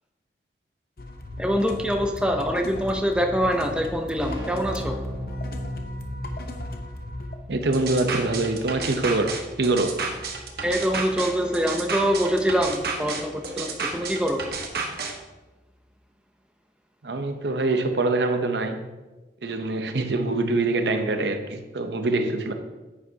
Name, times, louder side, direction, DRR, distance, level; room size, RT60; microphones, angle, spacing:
sound 1, 1.0-7.4, left 1 dB, 55° left, 0.8 m, -37 dB
voice 1, 1.4-5.0 10.6-14.4, equal, 5° right, 3 dB, 0.6 m, -24 dB
Keyboard (musical), 3.9-14.5, equal, 25° right, 2.0 m, -39 dB
voice 2, 7.5-10.0 17.0-18.9 19.4-22.5, right 2 dB, 75° right, 7 dB, 0.8 m, -24 dB
sound 2, 7.7-15.1, right 4 dB, 60° right, 1.1 m, -31 dB
9.3 x 8.5 x 2.8 m, 1.2 s
head